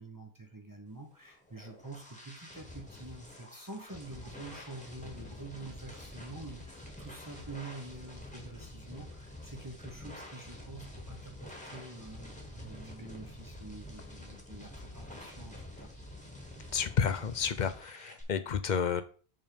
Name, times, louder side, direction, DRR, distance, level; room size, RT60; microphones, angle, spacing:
voice 1, 0.0-15.9, right 2 dB, 20° right, 2 dB, 1.0 m, -47 dB
sound 1, 1.3-18.2, left 1 dB, 5° left, 1.5 m, -48 dB
voice 2, 16.7-19.0, left 7 dB, 55° left, 11 dB, 0.6 m, -31 dB
7.5 x 3.6 x 5.1 m, 0.40 s
omnidirectional pair, 1.1 m